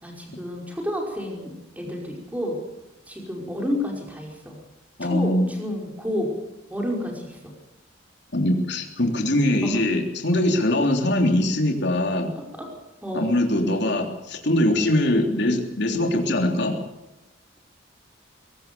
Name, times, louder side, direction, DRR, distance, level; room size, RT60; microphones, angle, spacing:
voice 1, 0.0-2.6 3.1-4.6 5.0-6.3 6.7-7.4 9.6-9.8 12.3-12.7 13.0-13.3, left 1 dB, 10° right, 0 dB, 5.1 m, -30 dB
voice 2, 5.0-5.5 8.3-12.3 13.1-16.8, left 1 dB, 60° left, 3 dB, 3.4 m, -22 dB
23.0 x 18.0 x 7.0 m, 0.97 s
head